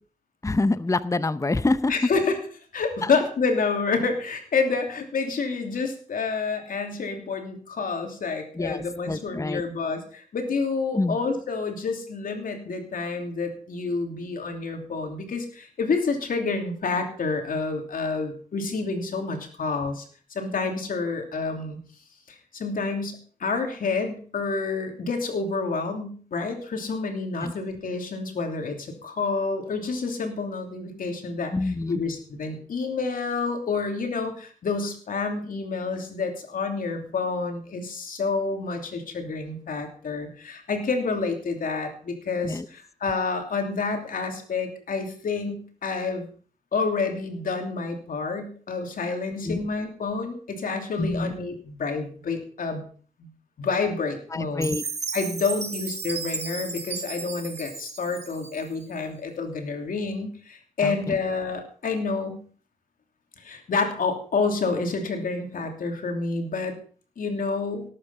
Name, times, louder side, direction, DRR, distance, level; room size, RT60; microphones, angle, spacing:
voice 1, 0.4-1.9 3.0-3.1 8.5-9.6 10.9-11.2 27.4-27.5 31.5-32.0 42.4-42.7 49.4-49.6 51.0-51.3 54.3-54.8 60.8-61.2, left 2 dB, 20° left, 14 dB, 0.7 m, -26 dB
voice 2, 1.9-2.4 2.7-20.0 20.3-21.8 22.5-46.3 46.7-52.9 53.2-53.3 53.6-54.7 55.1-62.4 63.4-66.7 67.2-67.8, left 4 dB, 90° left, 4 dB, 2.9 m, -28 dB
Chime, 54.6-58.9, right 4 dB, 50° right, 1.9 m, -34 dB
18.0 x 8.8 x 5.6 m, 0.43 s
cardioid pair, 60°, 14 cm